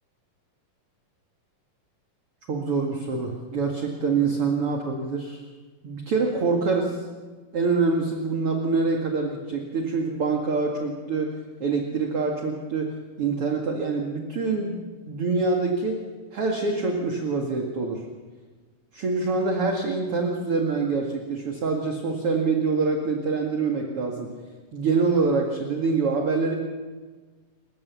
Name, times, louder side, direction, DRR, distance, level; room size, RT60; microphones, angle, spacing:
voice 1, 2.5-5.4 5.8-7.1 7.5-16.0 16.3-18.0 18.9-24.3 24.7-26.6, right 4 dB, 45° right, 1 dB, 2.7 m, -25 dB
29.5 x 15.5 x 7.1 m, 1.4 s
omnidirectional pair, 3.9 m